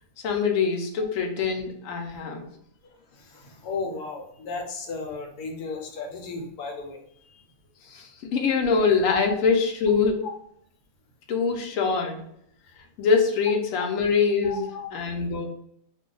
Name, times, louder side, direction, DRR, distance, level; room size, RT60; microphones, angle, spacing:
voice 1, 0.2-2.5 7.9-10.3 11.3-12.2 13.0-15.5, left 5 dB, 65° left, 3 dB, 0.9 m, -24 dB
voice 2, 3.2-7.0 10.2-10.3 14.4-14.9, left 4 dB, 85° left, 2 dB, 1.2 m, -34 dB
2.6 x 2.2 x 3.8 m, 0.70 s
omnidirectional pair, 1.6 m